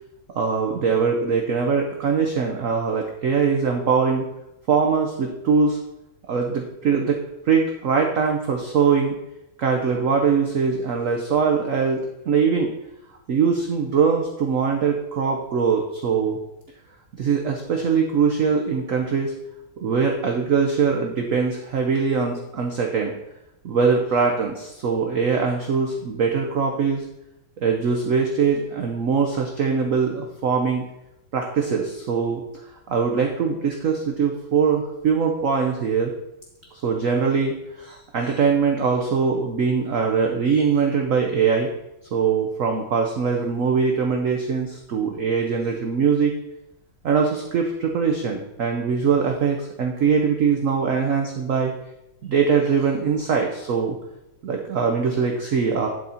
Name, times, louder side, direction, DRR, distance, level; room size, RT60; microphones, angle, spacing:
voice 1, 0.3-4.2 4.7-5.8 6.3-7.2 7.5-9.2 9.6-12.7 13.3-16.4 17.2-19.3 19.8-23.1 23.6-27.0 27.6-30.8 31.3-32.4 32.9-36.1 36.7-41.7 42.1-46.3 47.0-51.7 52.2-54.0 54.4-55.9, right 5 dB, 60° right, 2 dB, 0.8 m, -22 dB
11.0 x 4.1 x 4.3 m, 0.89 s
omnidirectional pair, 2.1 m